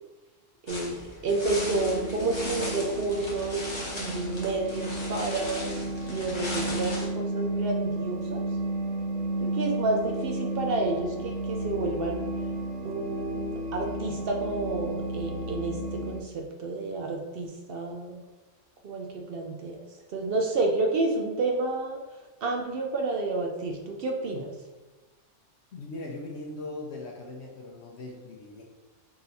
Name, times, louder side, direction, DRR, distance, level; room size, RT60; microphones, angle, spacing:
voice 1, 0.6-8.4 9.4-12.2 12.8-18.2 18.8-19.8 20.1-22.0 22.4-24.5, right 2 dB, 60° right, 2 dB, 0.6 m, -30 dB
sound 1, 0.7-7.1, left 1 dB, 25° left, 0.9 m, -38 dB
sound 2, 1.4-16.2, right 1 dB, 80° right, 1.3 m, -33 dB
voice 2, 25.7-28.6, left 2 dB, 65° left, -1 dB, 0.9 m, -39 dB
3.9 x 2.7 x 4.0 m, 1.2 s
omnidirectional pair, 1.3 m